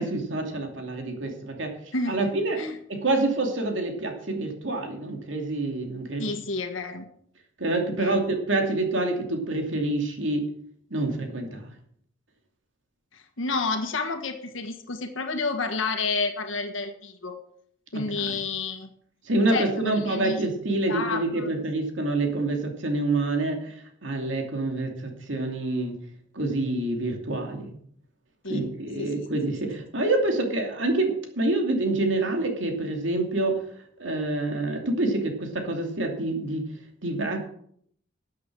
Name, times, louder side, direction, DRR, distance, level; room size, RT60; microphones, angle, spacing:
voice 1, 0.0-1.7 2.1-2.6 2.9-6.3 7.6-10.5 10.9-11.7 17.9-18.4 19.3-26.0 26.3-27.7 28.5-33.6 34.0-36.7 37.0-37.4, right 2 dB, 70° right, 3 dB, 2.6 m, -27 dB
voice 2, 6.2-7.0 7.9-8.2 13.1-17.4 17.9-18.9 19.5-20.4 20.9-21.5 28.4-28.7 29.0-29.3, left 3 dB, 80° left, 6 dB, 1.5 m, -30 dB
13.5 x 8.3 x 6.2 m, 0.65 s
head